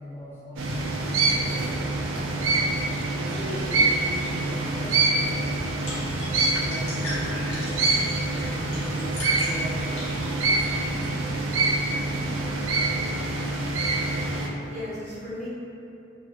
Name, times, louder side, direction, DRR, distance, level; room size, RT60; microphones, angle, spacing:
voice 1, 0.0-2.4 3.1-6.0 6.5-10.3, equal, 10° left, -9 dB, 0.3 m, -38 dB
sound 1, 0.6-14.5, right 3 dB, 85° right, 0.3 m, -26 dB
sound 2, 5.3-11.1, left 1 dB, 60° left, 0.9 m, -39 dB
voice 2, 13.9-15.5, left 1 dB, 35° right, -8 dB, 0.5 m, -38 dB
2.2 x 2.1 x 2.7 m, 2.6 s
head